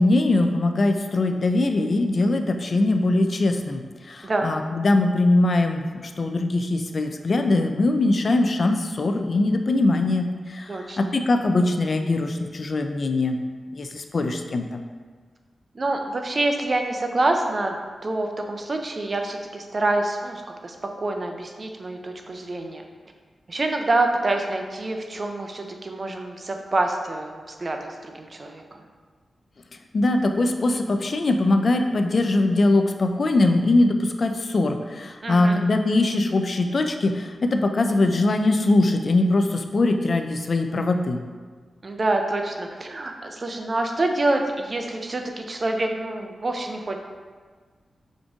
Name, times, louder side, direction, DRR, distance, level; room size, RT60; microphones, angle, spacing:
voice 1, 0.0-3.8 4.1-10.7 11.0-13.4 13.7-14.7 29.9-41.2, left 2 dB, 50° left, 6 dB, 0.3 m, -21 dB
voice 2, 10.7-11.0 15.7-22.8 23.5-28.8 35.2-35.6 41.8-47.0, right 2 dB, 40° right, 4 dB, 0.4 m, -26 dB
5.1 x 2.6 x 3.5 m, 1.5 s
wide cardioid pair, 100°, 0 cm